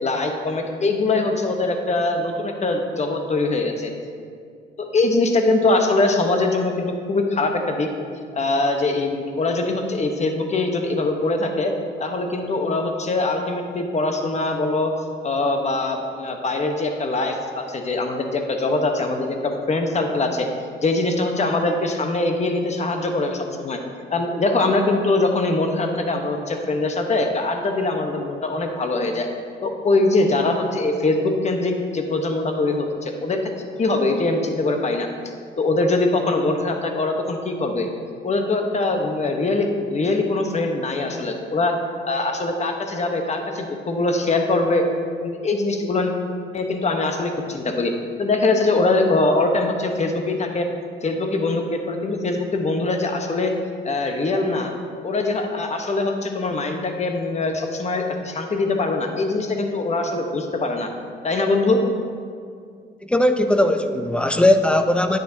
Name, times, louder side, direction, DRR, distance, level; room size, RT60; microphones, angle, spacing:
voice 1, 0.0-3.9 4.8-7.9 8.3-11.7 12.0-14.9 15.2-20.5 20.8-23.8 24.1-29.3 29.6-33.4 33.8-35.1 35.6-37.9 38.2-41.8 42.0-44.9 45.2-46.1 46.5-47.9 48.2-50.7 51.0-53.5 53.8-54.7 55.0-60.9 61.2-61.8, left 2 dB, 35° left, 4 dB, 1.0 m, -22 dB
voice 2, 63.1-65.2, left 1 dB, 5° left, 7 dB, 0.5 m, -18 dB
9.9 x 9.1 x 2.7 m, 2.2 s
cardioid pair, 90°, 20 cm